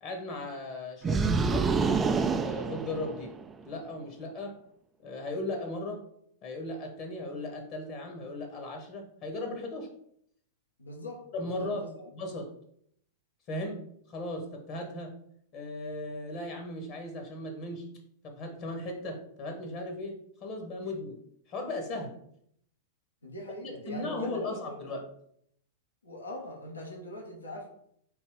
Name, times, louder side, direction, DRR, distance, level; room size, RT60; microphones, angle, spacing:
voice 1, 0.0-1.9 2.4-3.3 3.6-4.6 5.0-6.0 6.4-9.9 11.3-11.9 12.1-12.5 13.5-15.2 15.5-18.0 18.2-21.2 21.5-22.2 23.6-25.0, left 2 dB, 40° left, 3 dB, 1.1 m, -37 dB
sound 1, 1.0-3.5, right 4 dB, 20° right, 0.3 m, -27 dB
voice 2, 10.8-12.1 23.2-24.9 26.0-27.7, left 1 dB, 80° left, 0 dB, 1.0 m, -42 dB
3.6 x 2.8 x 4.7 m, 0.69 s
figure-of-eight pair, 100°, 0 cm